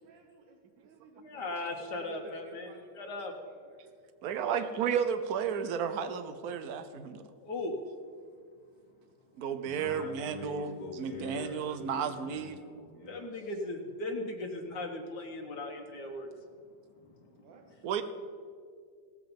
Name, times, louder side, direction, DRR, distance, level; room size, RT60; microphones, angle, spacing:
voice 1, 0.0-1.5 2.0-3.1 3.4-3.9 17.4-17.6, right 3 dB, 85° right, 3 dB, 1.6 m, -54 dB
voice 2, 1.2-3.3 4.4-4.7 7.4-7.8 13.1-16.3, left 2 dB, 70° left, 2 dB, 1.8 m, -38 dB
voice 3, 4.2-7.2 9.4-12.6 17.8-18.0, right 7 dB, 60° right, 10 dB, 1.2 m, -33 dB
voice 4, 9.6-13.5 16.9-17.8, left 2 dB, 20° left, 0 dB, 1.8 m, -46 dB
17.5 x 7.6 x 5.2 m, 2.1 s
omnidirectional pair, 2.0 m